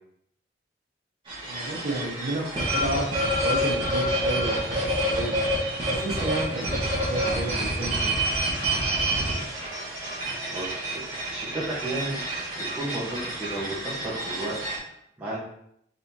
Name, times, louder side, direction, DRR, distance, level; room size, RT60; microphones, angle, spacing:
sound 1, 1.3-14.8, right 1 dB, 30° right, 1.5 m, -28 dB
voice 1, 1.4-5.3 5.9-8.1, right 1 dB, 70° right, -5 dB, 1.3 m, -32 dB
voice 2, 10.5-14.5 14.8-15.4, right 2 dB, 10° right, -8 dB, 1.1 m, -34 dB
4.0 x 3.8 x 2.8 m, 0.73 s
head